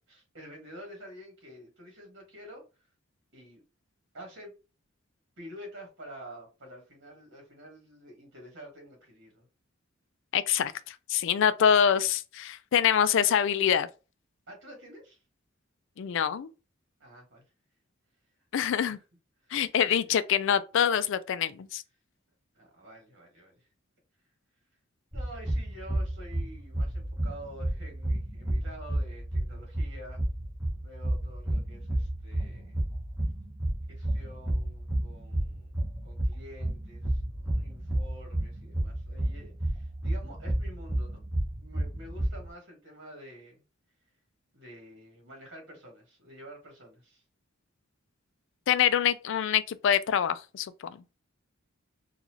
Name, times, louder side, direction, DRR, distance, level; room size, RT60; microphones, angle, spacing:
voice 1, 0.1-2.6 3.3-3.6 4.1-4.5 5.4-9.5 14.5-15.2 17.0-17.4 18.7-19.0 19.4-20.1 22.5-23.7 25.1-30.2 30.8-32.9 33.9-35.7 36.0-41.2 41.6-43.6 44.5-47.2, equal, 60° right, 1.5 m, -49 dB
voice 2, 10.3-13.9 16.0-16.5 18.5-19.0 19.5-21.8 48.7-51.0, left 8 dB, 65° left, 0.4 m, -25 dB
sound 1, 25.1-42.5, right 1 dB, 10° right, 0.9 m, -31 dB
4.0 x 2.4 x 2.9 m
head